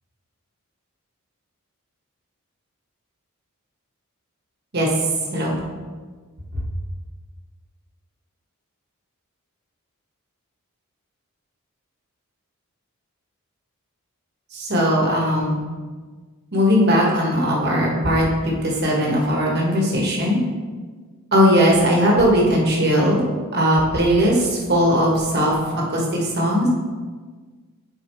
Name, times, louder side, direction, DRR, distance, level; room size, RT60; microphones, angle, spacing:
voice 1, 14.5-15.6 16.5-20.4 21.3-23.3 23.5-26.7, equal, 50° right, -3 dB, 1.5 m, -19 dB
8.9 x 4.5 x 3.2 m, 1.4 s
head